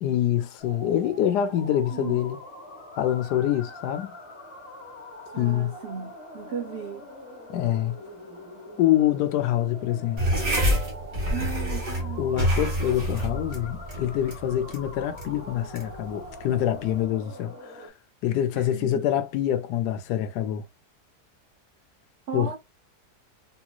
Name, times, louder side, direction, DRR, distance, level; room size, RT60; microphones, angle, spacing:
voice 1, 0.0-2.4 3.0-4.1 5.4-5.7 7.5-8.0 8.8-10.2 12.2-17.9 18.2-20.6 22.3-22.6, left 11 dB, 80° left, 1.2 m, -25 dB
sound 1, 0.6-17.9, left 1 dB, 20° left, 1.3 m, -44 dB
voice 2, 1.9-2.2 5.3-7.1 11.3-12.2 18.5-19.0 22.3-22.6, right 8 dB, 75° right, 0.6 m, -36 dB
sound 2, 10.2-17.0, equal, 30° right, 1.2 m, -28 dB
3.7 x 2.9 x 2.3 m
omnidirectional pair, 1.8 m